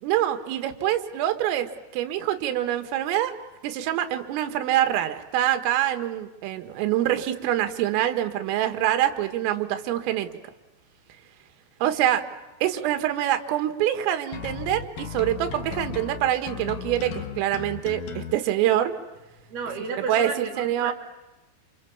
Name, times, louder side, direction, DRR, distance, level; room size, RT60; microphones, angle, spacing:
voice 1, 0.0-3.4 3.6-10.3 11.8-12.2 12.6-18.9 20.1-20.9, right 12 dB, 80° right, 8 dB, 4.2 m, -25 dB
sound 1, 14.3-18.3, left 8 dB, 65° left, 2.3 m, -35 dB
voice 2, 19.5-20.9, right 4 dB, 50° right, 4 dB, 5.1 m, -32 dB
29.0 x 28.5 x 7.2 m, 1.0 s
omnidirectional pair, 5.9 m